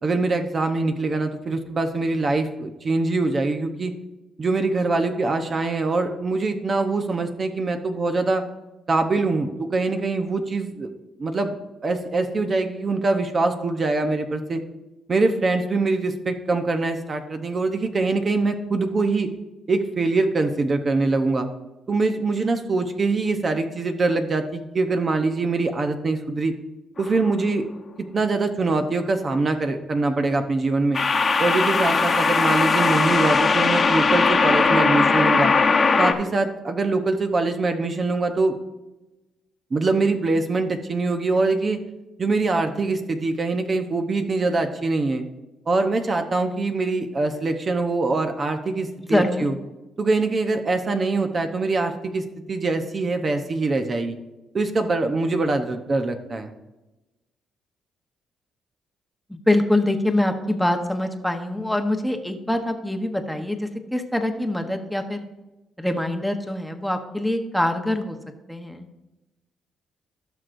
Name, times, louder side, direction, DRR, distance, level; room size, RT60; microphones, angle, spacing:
voice 1, 0.0-3.9 4.4-8.4 8.9-10.9 11.2-14.6 15.1-19.3 19.7-21.5 21.9-26.5 27.0-27.6 28.0-31.0 31.4-35.5 36.0-38.5 39.7-41.8 42.2-45.2 45.7-49.5 50.0-54.2 54.5-56.5, right 3 dB, 40° right, 6 dB, 0.8 m, -23 dB
sound 1, 27.0-27.3 30.9-36.1, left 4 dB, 35° left, 1.0 m, -19 dB
voice 2, 49.1-49.4 59.3-65.2 65.8-68.2 68.5-68.9, left 1 dB, ahead, 4 dB, 1.0 m, -24 dB
17.0 x 6.2 x 2.6 m, 1.0 s
cardioid pair, 90°, 0 cm